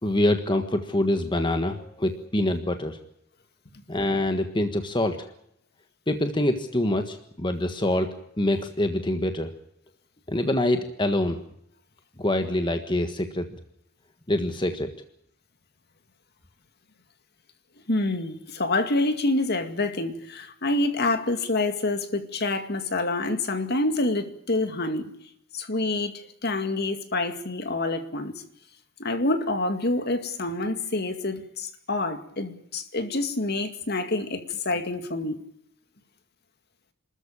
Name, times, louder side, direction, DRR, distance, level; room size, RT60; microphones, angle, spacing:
voice 1, 0.0-3.0 3.9-5.3 6.1-9.5 10.3-11.4 12.2-13.5 14.3-14.9, left 1 dB, 25° left, 1.5 m, -25 dB
voice 2, 17.9-25.1 25.5-26.1 26.4-28.3 29.0-35.4, left 2 dB, 50° left, 2.2 m, -27 dB
28.0 x 13.5 x 8.8 m
head